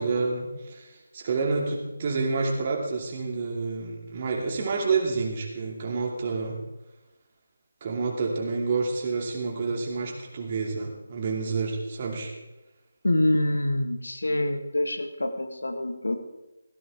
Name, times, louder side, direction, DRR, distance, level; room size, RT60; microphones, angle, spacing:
voice 1, 0.0-6.6 7.8-12.3, right 4 dB, 35° right, 0 dB, 2.6 m, -29 dB
voice 2, 13.0-16.2, left 1 dB, 70° left, 8 dB, 1.7 m, -26 dB
17.0 x 14.5 x 3.7 m, 1.0 s
figure-of-eight pair, 155°, 0 cm